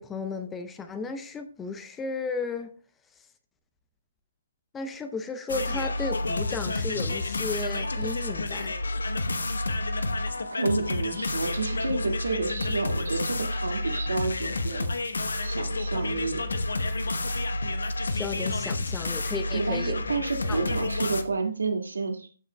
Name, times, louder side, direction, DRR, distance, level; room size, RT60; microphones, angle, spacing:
voice 1, 0.0-2.7 4.7-8.7 18.1-19.9 20.5-20.7, left 4 dB, 10° left, 9 dB, 0.7 m, -34 dB
sound 1, 5.5-21.2, left 2 dB, 70° left, 0.9 m, -30 dB
voice 2, 10.6-14.9 15.4-16.4 19.5-22.3, right 3 dB, 75° right, 3 dB, 1.9 m, -30 dB
13.5 x 6.4 x 2.2 m, 0.40 s
figure-of-eight pair, 135°, 0 cm